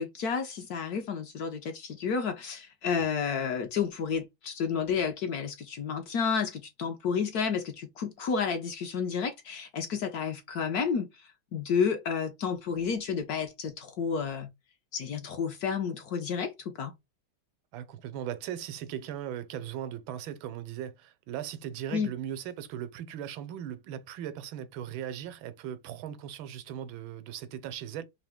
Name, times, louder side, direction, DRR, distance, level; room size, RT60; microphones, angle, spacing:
voice 1, 0.0-14.5 14.9-16.9 21.9-22.1, left 6 dB, 65° left, 1.0 m, -31 dB
voice 2, 17.7-28.0, right 10 dB, 90° right, 1.5 m, -38 dB
3.8 x 2.8 x 3.4 m
omnidirectional pair, 2.1 m